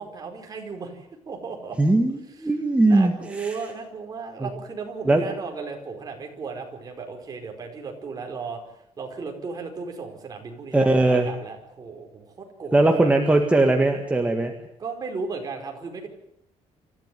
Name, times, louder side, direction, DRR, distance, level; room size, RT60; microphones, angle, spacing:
voice 1, 0.0-1.8 2.4-2.5 2.9-8.6 9.0-13.2 14.8-16.1, right 4 dB, 30° right, 3 dB, 4.9 m, -35 dB
voice 2, 1.8-3.1 3.4-3.5 4.4-4.5 5.1-5.2 10.7-11.3 12.7-14.5, right 2 dB, 10° right, 3 dB, 1.8 m, -19 dB
26.5 x 15.0 x 9.5 m, 0.75 s
cardioid pair, 160°, 12 cm